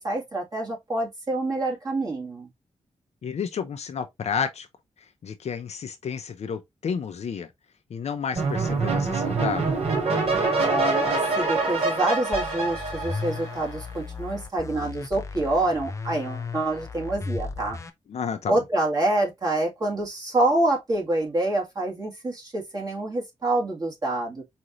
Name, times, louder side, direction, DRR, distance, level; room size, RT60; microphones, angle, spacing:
voice 1, 0.0-2.5 10.6-17.8 18.5-24.4, right 2 dB, 30° right, 2.1 m, -26 dB
voice 2, 3.2-4.7 5.2-7.5 7.9-9.8 18.1-18.6, left 6 dB, 65° left, 0.7 m, -31 dB
sound 1, 8.3-13.8, right 3 dB, 60° right, 2.6 m, -25 dB
sound 2, 12.3-17.9, left 4 dB, 25° left, 0.6 m, -35 dB
4.9 x 2.7 x 3.0 m
wide cardioid pair, 130°, 12 cm